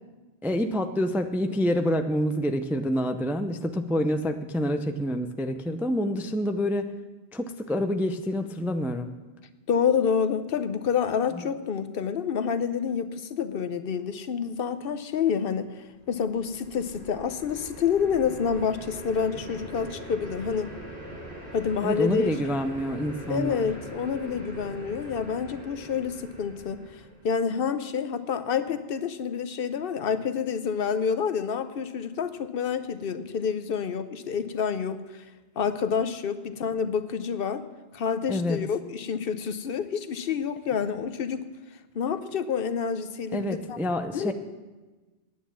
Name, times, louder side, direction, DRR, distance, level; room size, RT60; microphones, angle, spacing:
voice 1, 0.4-6.9 7.3-9.1 11.3-11.4 21.8-23.6 38.3-38.6 43.3-44.3, equal, 5° right, 7 dB, 0.3 m, -27 dB
voice 2, 9.7-20.7 21.5-22.3 23.3-35.2 35.6-37.6 37.9-41.4 41.9-43.8 44.1-44.3, left 6 dB, 65° left, 11 dB, 0.8 m, -28 dB
sound 1, 15.9-27.3, right 1 dB, 85° right, 3.3 m, -42 dB
9.3 x 9.2 x 7.2 m, 1.2 s
omnidirectional pair, 1.1 m